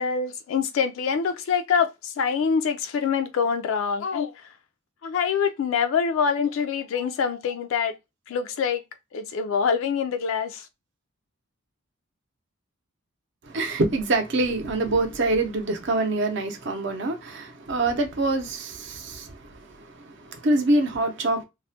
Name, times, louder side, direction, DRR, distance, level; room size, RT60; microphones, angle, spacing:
voice 1, 0.0-4.3 5.0-7.9 8.3-8.8 9.1-10.7, left 6 dB, 65° left, 0.3 m, -25 dB
voice 2, 13.4-21.4, right 2 dB, 55° right, 0.6 m, -25 dB
2.3 x 2.1 x 2.6 m
head